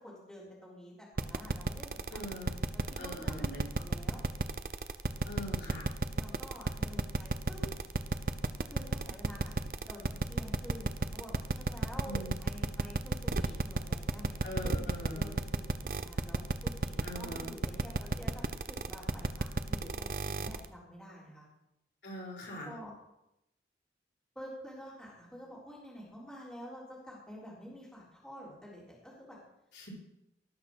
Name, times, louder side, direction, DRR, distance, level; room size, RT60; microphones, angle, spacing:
voice 1, 0.0-2.3 2.7-4.3 6.1-7.7 8.7-14.4 14.6-21.5 22.5-22.9 24.4-29.4, equal, 5° left, -6 dB, 3.8 m, -49 dB
sound 1, 1.2-20.6, right 3 dB, 55° right, 0.7 m, -32 dB
voice 2, 2.1-2.5 3.0-3.6 5.2-5.9 12.0-12.3 14.4-15.3 17.0-17.5 22.0-22.7 29.7-29.9, left 1 dB, 85° left, -4 dB, 5.0 m, -42 dB
18.0 x 6.4 x 6.3 m, 0.87 s
head